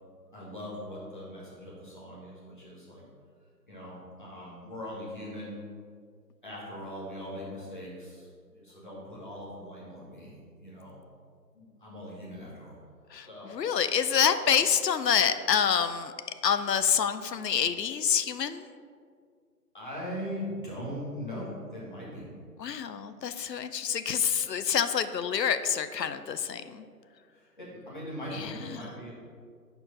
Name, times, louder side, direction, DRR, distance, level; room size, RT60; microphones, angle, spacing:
voice 1, 0.3-3.0 3.7-5.5 6.4-11.0 11.5-12.8 13.2-13.5 14.4-14.6 19.7-22.3 27.3-29.1, equal, 30° left, -7 dB, 1.7 m, -40 dB
voice 2, 13.1-16.1 16.4-18.7 22.6-26.8 28.3-28.9, left 8 dB, 85° left, 11 dB, 0.6 m, -27 dB
5.8 x 4.6 x 5.2 m, 2.1 s
hypercardioid pair, 175°, 49 cm